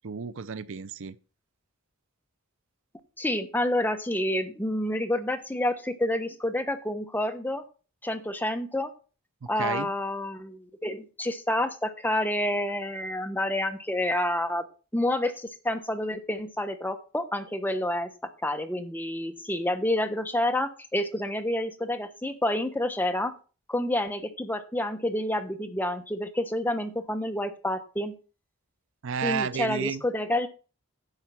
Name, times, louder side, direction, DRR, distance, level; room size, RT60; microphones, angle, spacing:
voice 1, 0.0-1.2 9.4-9.9 29.0-30.0, right 6 dB, 60° right, 0.5 m, -32 dB
voice 2, 3.2-7.6 8.0-8.9 9.5-14.6 14.9-18.1 18.4-23.3 23.7-28.1 29.2-30.5, left 1 dB, 10° left, 1.1 m, -28 dB
10.5 x 7.4 x 5.7 m
head